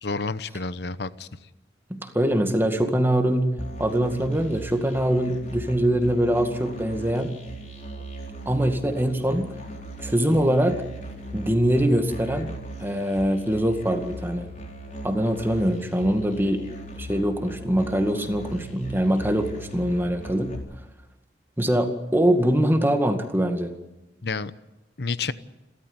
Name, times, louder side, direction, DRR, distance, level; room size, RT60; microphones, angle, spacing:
voice 1, 0.0-1.3 24.2-24.5 25.0-25.3, left 4 dB, 65° left, 15 dB, 1.0 m, -29 dB
voice 2, 1.9-3.5 3.8-7.3 8.5-9.5 10.0-10.8 11.3-12.5 12.8-14.5 15.0-16.6 17.0-20.5 21.6-23.7, right 1 dB, 10° right, 6 dB, 2.0 m, -23 dB
Musical instrument, 3.6-20.6, right 1 dB, 40° left, 4.3 m, -38 dB
29.5 x 13.5 x 9.7 m, 1.0 s
head